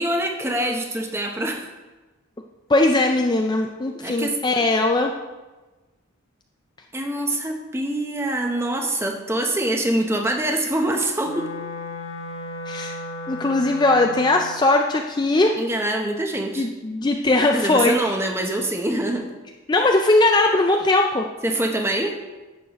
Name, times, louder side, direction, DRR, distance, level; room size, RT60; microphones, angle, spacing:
voice 1, 0.0-1.7 2.9-3.1 3.9-4.4 6.9-11.5 15.5-16.7 17.5-19.3 21.4-22.2, right 1 dB, 10° right, 3 dB, 0.7 m, -25 dB
voice 2, 2.7-5.1 12.7-13.0 13.3-15.5 16.6-18.1 19.7-21.3, left 2 dB, 20° left, 3 dB, 0.4 m, -19 dB
Wind instrument woodwind instrument, 11.2-14.6, left 1 dB, 70° left, 1.2 m, -34 dB
11.0 x 7.9 x 3.0 m, 1.2 s
head